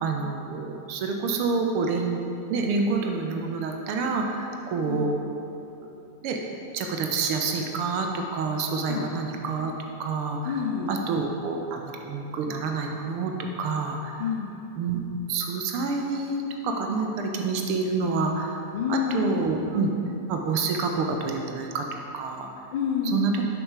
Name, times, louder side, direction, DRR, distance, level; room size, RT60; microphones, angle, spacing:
voice 1, 0.0-2.2 2.5-5.1 5.9-6.0 6.2-9.7 10.0-10.6 10.9-13.3 13.6-14.3 14.7-15.0 15.3-18.6 18.9-19.9 20.3-21.9 22.1-22.5 23.1-23.4, right 4 dB, 45° right, 2 dB, 0.6 m, -28 dB
voice 2, 10.4-11.0 14.2-14.6 18.7-19.5 22.7-23.4, left 6 dB, 55° left, -1 dB, 0.5 m, -28 dB
7.0 x 5.0 x 3.4 m, 2.8 s
figure-of-eight pair, 90°, 0 cm